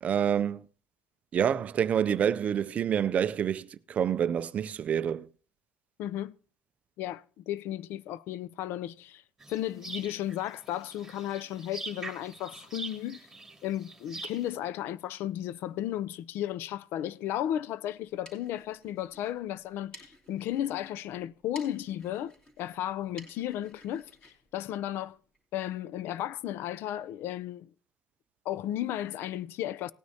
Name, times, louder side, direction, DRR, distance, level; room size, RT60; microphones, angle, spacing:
voice 1, 0.0-0.6 1.3-5.3, right 8 dB, 35° right, 0.4 m, -27 dB
voice 2, 6.0-6.4 7.0-9.2 9.5-13.3 13.6-25.2 25.5-27.7 28.5-29.9, left 12 dB, 60° left, 0.4 m, -34 dB
sound 1, 9.4-14.5, right 3 dB, 5° right, 2.2 m, -44 dB
sound 2, 18.0-25.4, equal, 15° left, 2.7 m, -55 dB
17.5 x 9.5 x 2.8 m
cardioid pair, 150°, 4 cm